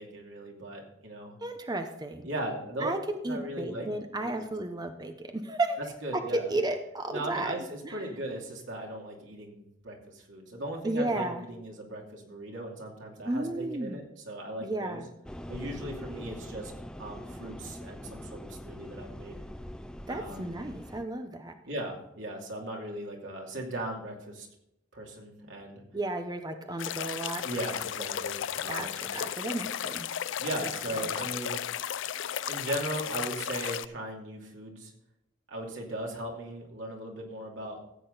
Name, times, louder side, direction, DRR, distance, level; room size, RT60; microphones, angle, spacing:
voice 1, 0.0-1.4 2.2-2.9 3.3-3.9 4.2-4.4 6.0-6.5 7.1-15.0 15.5-16.7 17.0-19.4 20.1-20.5 21.6-24.5 24.9-25.8 27.4-29.1 30.4-31.6 32.5-34.9 35.5-37.8, right 1 dB, 90° right, 0 dB, 2.7 m, -38 dB
voice 2, 1.4-2.3 2.8-3.0 3.2-5.8 6.3-7.5 7.8-8.0 10.8-11.4 13.3-14.0 14.6-15.1 20.1-21.5 25.9-27.4 28.7-28.9 29.1-30.1 30.6-31.1, right 2 dB, 20° right, 6 dB, 0.8 m, -33 dB
sound 1, 15.3-21.0, equal, 5° left, 0.4 m, -43 dB
sound 2, 26.8-33.9, left 10 dB, 80° left, 0.4 m, -34 dB
14.5 x 8.4 x 4.0 m, 0.82 s
head